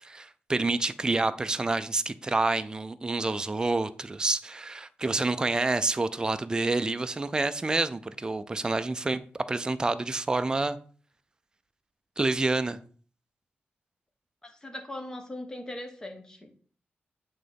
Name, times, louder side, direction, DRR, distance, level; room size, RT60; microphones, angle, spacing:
voice 1, 0.0-10.8 12.2-12.8, right 3 dB, 20° right, 0.5 m, -28 dB
voice 2, 14.4-16.6, left 1 dB, 15° left, 1.2 m, -40 dB
8.9 x 3.8 x 5.2 m
wide cardioid pair, 160°, 4 cm